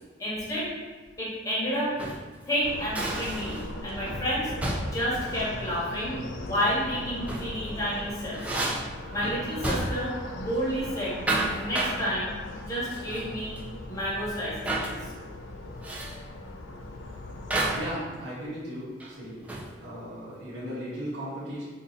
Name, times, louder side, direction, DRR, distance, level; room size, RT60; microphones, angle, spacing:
voice 1, 0.2-0.7 1.2-1.9 2.4-3.6 3.8-4.5 4.8-8.5 9.1-11.2 11.5-12.3 12.7-13.5 13.9-15.0, equal, 20° left, -8 dB, 1.1 m, -30 dB
sound 1, 1.8-2.3 2.9-3.8 4.0-4.3 4.6-5.1 7.0-7.6 7.9-10.2 10.4-10.7 11.0-12.0 12.9-13.3 13.6-13.7 14.6-15.0 15.8-16.2 17.5-17.9 19.0-19.8, right 2 dB, 5° right, 0.3 m, -31 dB
sound 2, 2.6-17.9, left 2 dB, 80° left, 0.4 m, -39 dB
voice 2, 17.7-19.4 19.8-21.6, equal, 70° right, -10 dB, 1.2 m, -36 dB
2.9 x 2.6 x 3.9 m, 1.4 s
head